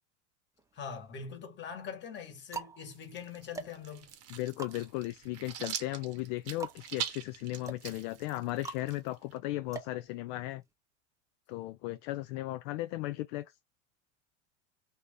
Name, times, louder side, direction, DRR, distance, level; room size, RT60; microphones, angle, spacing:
sound 1, 0.6-1.3 2.0-10.7, right 4 dB, 10° right, 0.6 m, -46 dB
voice 1, 0.7-4.1, left 6 dB, 30° left, 1.5 m, -43 dB
sound 2, 2.9-9.4, right 9 dB, 40° right, 0.9 m, -43 dB
voice 2, 4.3-10.6 11.5-13.5, left 17 dB, 55° left, 0.4 m, -36 dB
2.8 x 2.6 x 3.4 m
hypercardioid pair, 110°, 36 cm